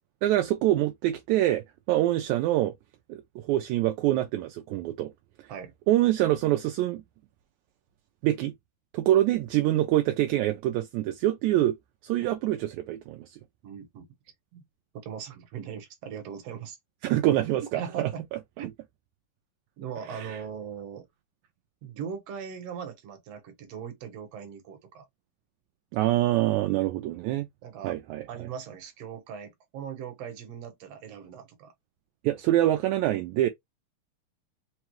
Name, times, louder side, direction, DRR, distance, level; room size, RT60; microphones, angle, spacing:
voice 1, 0.2-2.7 3.1-5.1 5.9-7.0 8.2-8.5 8.9-11.7 12.1-13.3 17.0-18.1 20.1-20.4 25.9-27.5 27.8-28.5 32.2-33.5, right 14 dB, 80° right, 1.8 m, -25 dB
voice 2, 13.6-14.1 14.5-14.6 15.0-16.8 17.7-18.2 18.6-18.7 19.8-21.1 21.8-25.1 27.6-28.0 28.3-31.7, right 7 dB, 60° right, 2.0 m, -39 dB
5.4 x 2.3 x 3.0 m
omnidirectional pair, 3.6 m